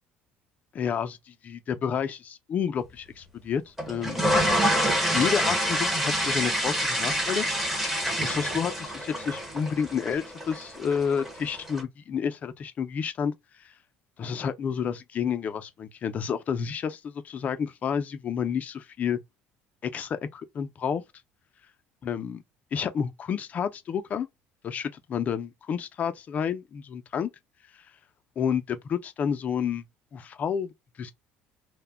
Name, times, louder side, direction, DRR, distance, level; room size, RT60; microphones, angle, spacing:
voice 1, 0.7-4.6 5.1-7.9 8.2-13.4 13.6-13.7 14.2-19.2 19.8-21.0 22.0-22.4 22.7-24.3 24.6-27.3 28.4-29.8 30.1-30.7 31.0-31.1, left 7 dB, 35° left, 0.3 m, -30 dB
sound 1, 3.8-11.8, equal, 5° right, 0.6 m, -27 dB
2.1 x 2.0 x 3.3 m
cardioid pair, 135°, 4 cm